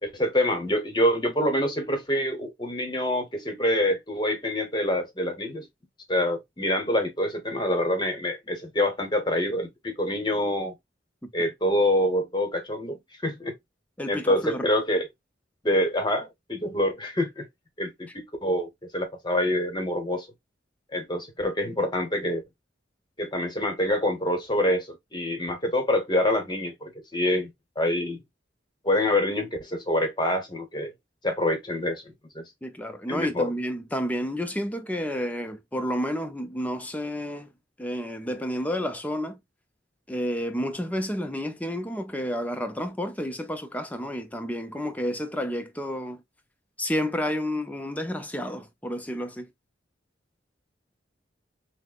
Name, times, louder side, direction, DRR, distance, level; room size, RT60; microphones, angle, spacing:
voice 1, 0.0-5.6 6.1-10.7 11.3-13.5 14.1-15.1 15.6-17.5 17.8-20.3 20.9-22.4 23.2-27.5 27.8-28.2 28.8-30.9 31.2-32.4 33.1-33.5, left 1 dB, 25° left, 1.0 m, -26 dB
voice 2, 14.0-14.7 32.6-37.5 37.8-39.4 40.1-46.2 46.8-49.5, equal, 10° left, 0.5 m, -30 dB
6.1 x 2.1 x 2.4 m
head